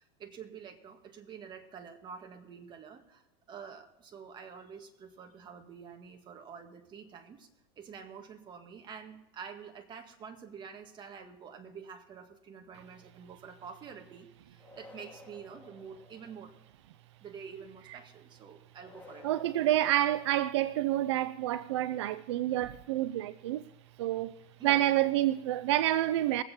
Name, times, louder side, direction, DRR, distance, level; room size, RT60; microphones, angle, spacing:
voice 1, 0.0-7.5 7.8-16.6 17.2-19.3 24.6-24.9, right 6 dB, 30° right, 1.9 m, -48 dB
sound 1, 14.6-16.7 18.8-20.8, left 3 dB, 10° left, 2.5 m, -54 dB
voice 2, 19.2-23.6 24.0-24.3 24.6-26.4, right 13 dB, 80° right, 0.5 m, -28 dB
21.0 x 8.1 x 4.3 m
supercardioid pair, 120°, 14 cm